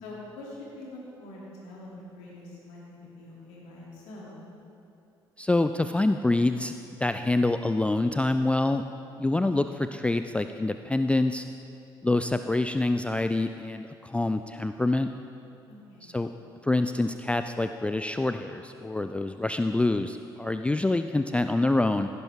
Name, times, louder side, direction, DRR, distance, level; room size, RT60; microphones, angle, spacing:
voice 1, 0.0-4.4 15.7-16.2, left 2 dB, 65° left, -5 dB, 2.9 m, -44 dB
voice 2, 5.4-6.7 7.0-8.8 9.2-11.4 12.0-15.1 16.0-16.3 16.6-22.1, left 2 dB, 10° left, 9 dB, 0.4 m, -26 dB
16.0 x 10.0 x 3.7 m, 2.7 s
figure-of-eight pair, 45°, 12 cm